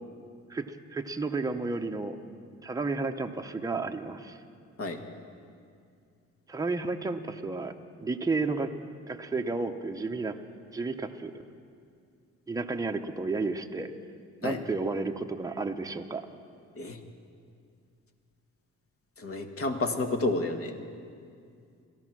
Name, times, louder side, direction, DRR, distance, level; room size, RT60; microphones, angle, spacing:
voice 1, 0.5-2.2 2.6-4.4 6.5-8.7 9.1-10.4 10.7-11.3 12.5-13.9 14.4-16.3, right 3 dB, 10° right, 4 dB, 0.8 m, -32 dB
voice 2, 19.2-20.7, left 2 dB, 45° left, 5 dB, 1.6 m, -30 dB
17.0 x 13.5 x 6.1 m, 2.3 s
cardioid pair, 90°, 30 cm